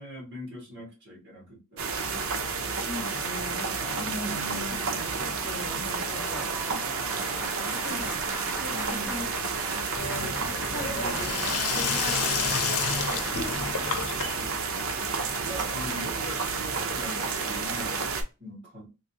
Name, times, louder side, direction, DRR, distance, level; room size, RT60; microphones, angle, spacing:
voice 1, 0.0-1.9 4.0-5.0 8.7-9.2 15.3-18.9, equal, 55° right, 1.8 m, -40 dB
sound 1, 1.8-18.2, right 5 dB, 70° right, 0.7 m, -31 dB
voice 2, 2.8-4.5 4.9-6.4 7.6-8.2 8.5-9.3 9.7-10.4 10.6-14.5, left 1 dB, 35° left, 1.4 m, -40 dB
Applause, 5.7-14.4, right 1 dB, 5° right, 0.7 m, -39 dB
Sink (filling or washing), 10.0-16.7, left 6 dB, 90° left, 0.6 m, -32 dB
3.2 x 2.6 x 2.7 m
head